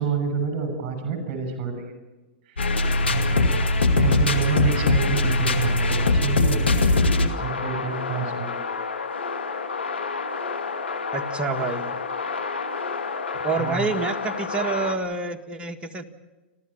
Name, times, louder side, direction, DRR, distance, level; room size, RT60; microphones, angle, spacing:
voice 1, 0.0-1.9 2.4-2.7 3.0-3.5 3.9-8.5 13.6-13.9, right 5 dB, 40° right, 7 dB, 6.7 m, -28 dB
sound 1, 2.6-15.0, left 2 dB, 90° left, 2.3 m, -24 dB
voice 2, 11.1-12.0 13.4-16.1, right 4 dB, 20° right, 4 dB, 1.8 m, -28 dB
29.5 x 13.5 x 8.7 m, 1.2 s
hypercardioid pair, 110°, 6 cm